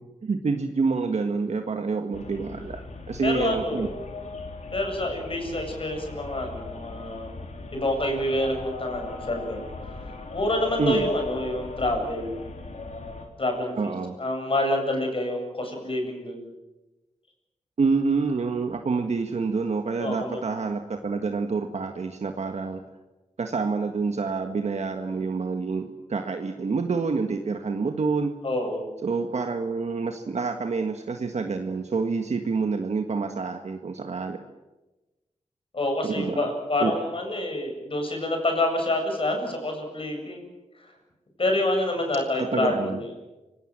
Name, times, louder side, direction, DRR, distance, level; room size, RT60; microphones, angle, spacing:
voice 1, 0.2-2.8 3.1-3.9 10.8-11.1 13.8-14.2 17.8-22.8 23.4-28.3 29.0-34.4 36.0-36.5 36.8-36.9 42.4-43.0, right 4 dB, 65° right, 5 dB, 1.6 m, -27 dB
sound 1, 2.1-13.3, left 3 dB, 70° left, 4.2 m, -38 dB
voice 2, 3.2-3.9 4.7-7.3 7.7-9.7 10.3-12.4 13.4-13.9 14.2-16.5 20.0-20.4 28.4-28.8 35.7-40.5 41.4-43.0, left 1 dB, 45° left, 3 dB, 7.7 m, -27 dB
29.5 x 18.5 x 7.6 m, 1.1 s
wide cardioid pair, 80°, 13 cm